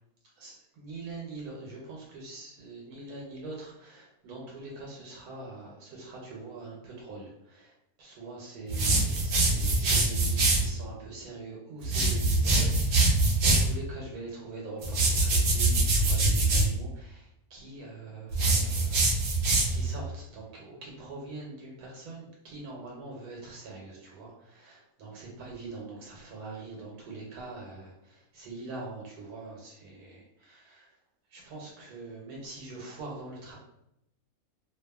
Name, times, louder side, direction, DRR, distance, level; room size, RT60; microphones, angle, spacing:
voice 1, 0.4-7.7 8.0-19.0 19.7-30.9 31.3-33.6, right 3 dB, 85° right, -3 dB, 1.2 m, -43 dB
sound 1, 8.7-10.7 11.8-13.7 14.8-16.7 18.3-19.9, right 2 dB, 65° right, 0.6 m, -24 dB
2.6 x 2.4 x 2.2 m, 0.82 s
omnidirectional pair, 1.5 m